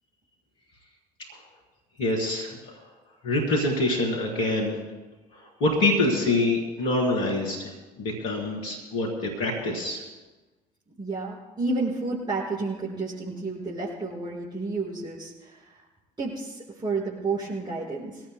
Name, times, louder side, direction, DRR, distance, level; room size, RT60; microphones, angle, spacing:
voice 1, 2.0-2.6 3.2-4.8 5.4-10.0, left 2 dB, 70° left, -2 dB, 3.9 m, -25 dB
voice 2, 11.0-15.6 16.2-18.2, right 3 dB, 20° right, -5 dB, 5.4 m, -31 dB
23.5 x 17.5 x 2.2 m, 1.2 s
hypercardioid pair, 55°, 21 cm